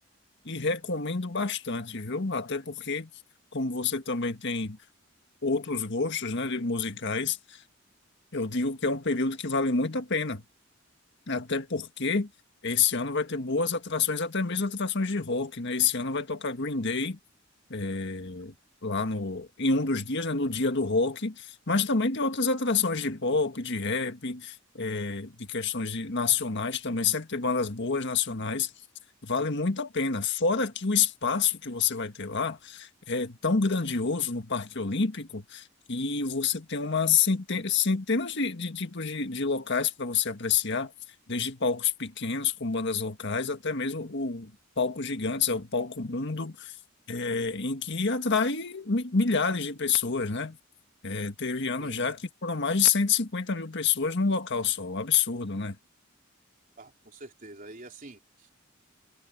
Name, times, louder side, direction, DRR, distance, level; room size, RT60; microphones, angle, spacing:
voice 1, 0.5-3.1 3.5-4.8 5.4-7.6 8.3-10.4 11.3-12.3 12.6-17.2 17.7-18.5 18.8-28.7 29.2-40.9 41.3-46.8 47.1-50.6 51.0-55.8, left 4 dB, 60° left, 1.7 m, -28 dB
voice 2, 56.8-58.5, right 2 dB, 45° right, 3.8 m, -47 dB
head